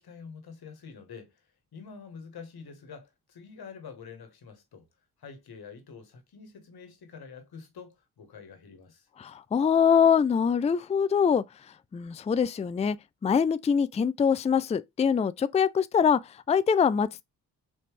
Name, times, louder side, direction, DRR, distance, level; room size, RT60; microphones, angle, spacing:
voice 1, 0.0-4.9 5.2-9.1, left 5 dB, 70° left, 1.4 m, -47 dB
voice 2, 9.2-11.4 11.9-13.0 13.2-17.2, left 7 dB, 20° left, 0.3 m, -24 dB
4.2 x 3.2 x 3.1 m
cardioid pair, 55°, 39 cm